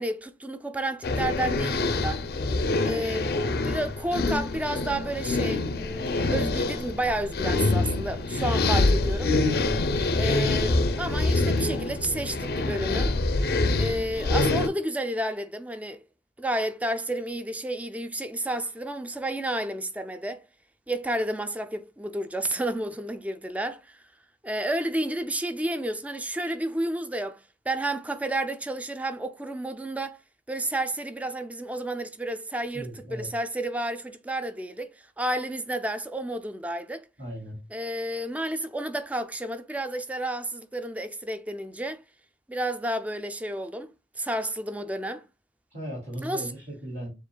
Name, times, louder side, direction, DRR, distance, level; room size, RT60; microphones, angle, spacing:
voice 1, 0.0-2.2 2.8-3.3 3.6-9.3 10.1-13.1 13.7-16.0 16.4-20.4 20.9-24.0 24.4-27.4 27.7-30.2 30.5-37.1 37.7-42.0 42.5-45.2 46.2-46.5, right 1 dB, 10° right, 0.4 m, -31 dB
sound 1, 1.0-14.7, left 2 dB, 60° left, 0.5 m, -25 dB
voice 2, 32.7-33.3 37.2-37.6 45.7-47.1, right 1 dB, 45° right, 2.4 m, -37 dB
7.3 x 2.5 x 2.2 m
head